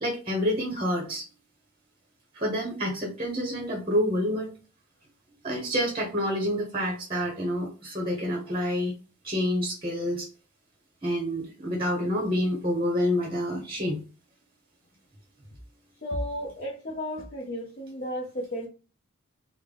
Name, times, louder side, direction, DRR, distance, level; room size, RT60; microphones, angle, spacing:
voice 1, 0.0-1.2 2.3-4.5 5.4-8.9 9.2-10.3 11.0-14.0, equal, 25° right, 0.8 m, -28 dB
voice 2, 16.0-18.7, equal, 40° left, 0.6 m, -33 dB
3.7 x 2.1 x 3.3 m
head